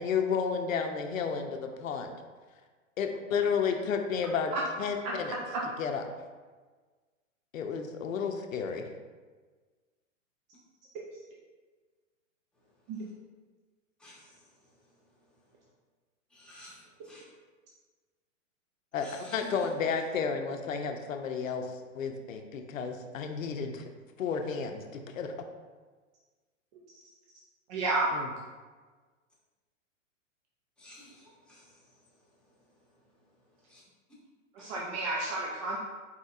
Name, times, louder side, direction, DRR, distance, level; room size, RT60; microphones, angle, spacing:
voice 1, 0.0-2.1 3.0-4.5 4.8-5.3 5.8-6.0 7.5-8.9 18.9-23.9 24.2-25.3 28.1-28.3, left 6 dB, 80° left, 5 dB, 0.6 m, -32 dB
voice 2, 5.0-5.6 11.1-11.2 12.9-13.1 26.9-27.0 27.7-28.1 34.5-35.8, right 2 dB, 25° right, -3 dB, 0.4 m, -32 dB
voice 3, 14.0-14.7 16.3-17.2 18.9-19.7 30.8-32.0 33.7-33.8 34.6-34.7, left 1 dB, ahead, -7 dB, 1.1 m, -52 dB
4.3 x 4.2 x 2.4 m, 1.4 s
hypercardioid pair, 115°, 40 cm